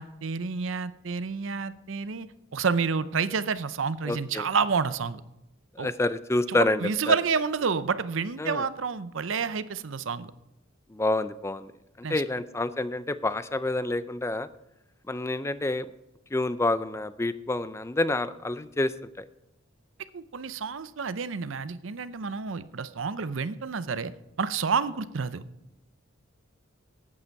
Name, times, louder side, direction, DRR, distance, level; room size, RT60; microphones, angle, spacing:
voice 1, 0.0-2.3 2.5-5.2 5.8-5.9 6.5-10.3 12.0-12.2 20.1-24.1 24.4-25.4, right 5 dB, 70° right, 14 dB, 0.6 m, -29 dB
voice 2, 4.1-4.4 5.8-7.2 8.4-8.7 10.9-11.7 12.0-14.5 15.1-15.9 16.3-19.2, left 2 dB, 15° left, 14 dB, 0.4 m, -28 dB
12.0 x 8.6 x 4.6 m, 0.89 s
head